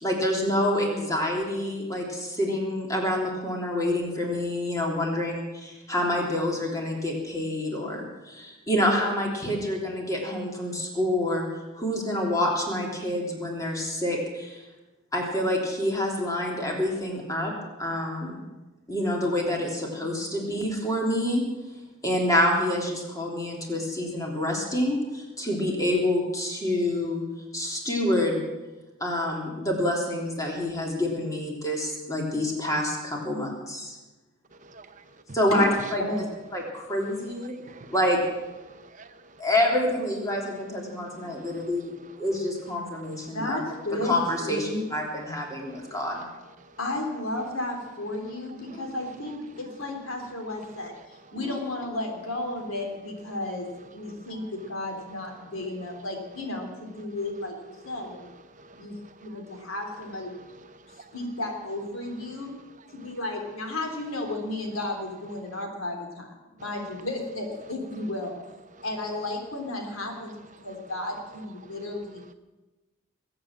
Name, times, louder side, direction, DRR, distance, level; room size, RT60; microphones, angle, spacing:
voice 1, 0.0-11.5 11.7-14.6 15.1-17.5 17.8-18.4 18.9-21.4 22.0-27.2 27.5-28.4 29.0-34.0 35.3-36.0 36.5-37.5 37.9-38.2 39.4-43.6 44.0-46.3 48.7-48.8 51.4-51.6, left 1 dB, 15° left, 3.3 m, -27 dB
voice 2, 34.6-35.0 37.7-37.9 38.6-39.1 45.9-46.0 58.6-59.6 60.9-61.1, right 3 dB, 35° right, 0.8 m, -50 dB
voice 3, 43.3-44.2 44.4-44.9 46.8-58.3 58.8-58.9 59.2-60.3 61.1-62.5 62.9-68.3 68.8-70.4 70.6-72.2, left 1 dB, 75° left, 3.3 m, -33 dB
21.5 x 8.7 x 7.5 m
head